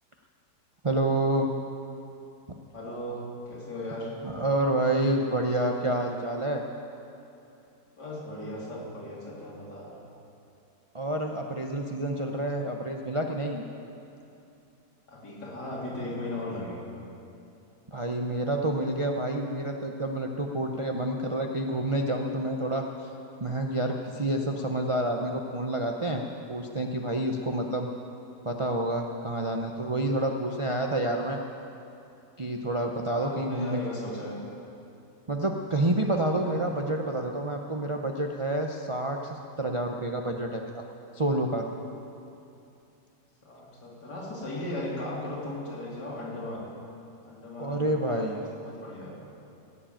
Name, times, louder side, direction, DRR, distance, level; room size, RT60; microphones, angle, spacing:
voice 1, 0.8-1.5 4.2-6.6 10.9-13.6 17.9-23.1 23.4-26.2 26.5-27.9 28.4-31.4 32.4-33.8 35.3-40.8 41.1-41.7 47.6-48.4, right 1 dB, 45° right, 1 dB, 0.4 m, -28 dB
voice 2, 2.7-4.1 8.0-10.0 15.1-16.9 27.5-27.6 33.1-34.4 36.4-36.7 43.4-46.7 47.2-49.1, left 1 dB, 75° left, -6 dB, 3.8 m, -37 dB
16.5 x 7.5 x 9.0 m, 2.8 s
omnidirectional pair, 1.8 m